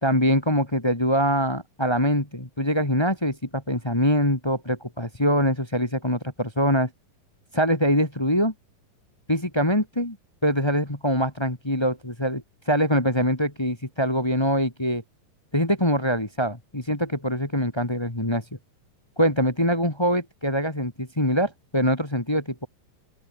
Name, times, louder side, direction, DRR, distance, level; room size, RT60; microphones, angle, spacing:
voice 1, 0.0-6.9 7.5-8.5 9.3-10.1 10.4-15.0 15.5-18.4 19.2-22.7, equal, 10° left, 1.2 m, -24 dB
open air
omnidirectional pair, 4.0 m